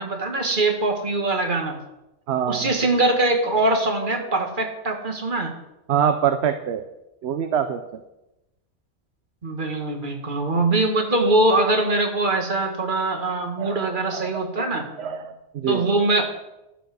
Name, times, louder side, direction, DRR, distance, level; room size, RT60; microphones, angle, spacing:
voice 1, 0.0-1.8 2.5-5.5 9.4-14.9 15.7-16.2, right 2 dB, 45° right, 4 dB, 1.8 m, -22 dB
voice 2, 2.3-2.7 5.9-6.9 7.2-8.0 13.6-14.5 15.0-15.9, right 8 dB, 65° right, 8 dB, 0.9 m, -25 dB
12.0 x 7.1 x 6.2 m, 0.93 s
omnidirectional pair, 1.2 m